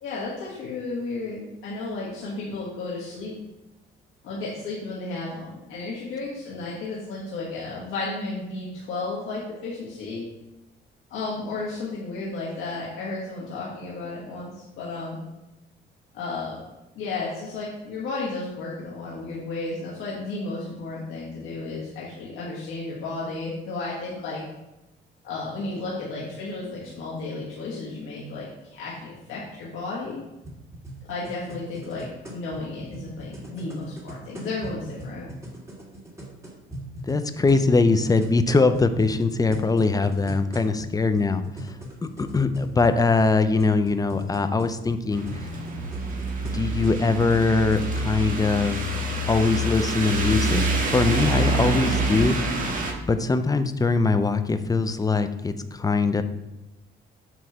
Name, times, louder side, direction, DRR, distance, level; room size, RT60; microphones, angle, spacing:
voice 1, 0.0-3.3 4.2-10.3 11.1-15.2 16.1-16.6 16.9-24.4 25.2-30.2 31.1-35.3, left 3 dB, 90° left, -6 dB, 1.5 m, -33 dB
sound 1, 30.4-48.3, right 1 dB, 15° right, 2.2 m, -40 dB
voice 2, 37.1-41.4 42.2-45.2 46.5-48.8 49.3-50.6 50.9-52.4 53.0-56.2, left 3 dB, 20° left, 9 dB, 0.5 m, -22 dB
sound 2, 45.1-52.9, right 1 dB, 45° right, 1.5 m, -26 dB
7.8 x 3.1 x 5.9 m, 0.97 s
cardioid pair, 90°, 20 cm